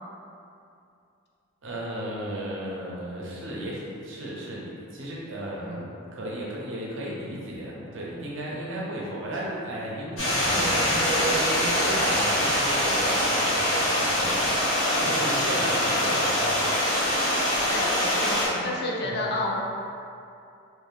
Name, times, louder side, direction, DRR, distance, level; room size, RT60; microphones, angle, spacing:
voice 1, 1.6-16.6 18.5-18.8 19.0-19.3, right 1 dB, 70° right, -4 dB, 0.7 m, -34 dB
Stream, 10.2-18.5, left 1 dB, 90° left, 1.3 m, -24 dB
voice 2, 17.7-18.4 18.6-19.6, left 2 dB, 50° left, -2 dB, 0.4 m, -29 dB
3.0 x 2.5 x 3.5 m, 2.6 s
head